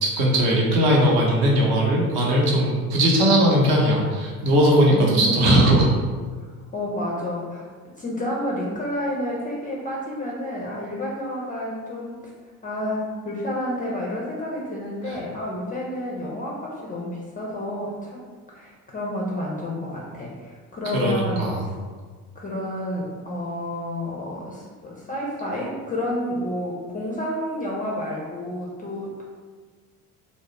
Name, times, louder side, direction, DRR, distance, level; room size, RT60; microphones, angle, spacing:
voice 1, 0.0-5.9 15.1-15.2 20.9-21.6, right 1 dB, 55° right, -2 dB, 0.8 m, -19 dB
voice 2, 4.9-5.4 6.7-7.6 8.0-12.2 12.6-21.7 22.4-29.2, left 1 dB, 20° left, -3 dB, 0.4 m, -30 dB
2.3 x 2.1 x 3.0 m, 1.5 s
hypercardioid pair, 65°, 45 cm